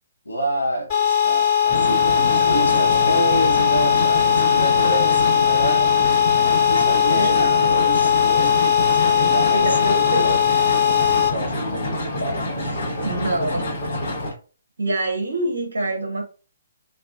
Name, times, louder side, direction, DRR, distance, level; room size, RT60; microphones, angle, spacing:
voice 1, 0.2-6.3 6.7-10.4 11.1-13.1, right 1 dB, 85° left, 0.8 m, -29 dB
sound 1, 0.9-11.3, left 8 dB, 30° left, 1.4 m, -18 dB
sound 2, 1.7-14.3, left 1 dB, 50° left, 1.0 m, -27 dB
voice 2, 7.1-7.6 9.5-10.4 13.0-13.8 14.8-16.2, right 1 dB, 65° right, 0.6 m, -25 dB
2.3 x 2.3 x 2.3 m
figure-of-eight pair, 130°, 0 cm